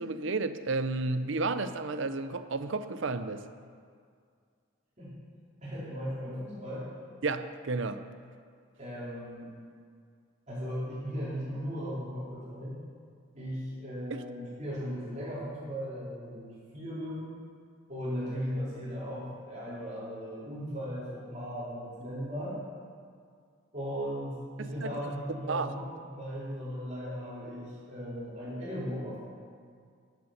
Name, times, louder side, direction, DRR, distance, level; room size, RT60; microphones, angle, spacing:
voice 1, 0.0-3.4 7.2-8.1 14.1-14.2 24.6-25.0 25.5-25.7, right 3 dB, 60° right, 11 dB, 0.6 m, -32 dB
voice 2, 5.6-6.9 8.8-9.5 10.5-12.7 13.3-17.3 17.9-22.6 23.7-29.2, equal, 35° right, -8 dB, 3.9 m, -37 dB
14.5 x 8.2 x 5.9 m, 2.2 s
head